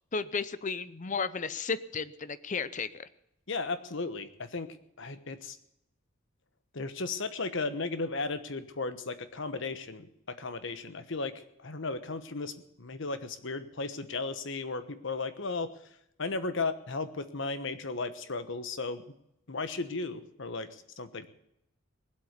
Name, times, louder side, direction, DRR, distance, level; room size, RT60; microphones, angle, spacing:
voice 1, 0.1-3.1, left 5 dB, 35° left, 15 dB, 0.6 m, -33 dB
voice 2, 3.5-5.6 6.7-15.7 16.2-19.0 19.5-21.3, left 3 dB, 60° left, 11 dB, 1.2 m, -35 dB
19.0 x 8.2 x 8.2 m, 0.80 s
head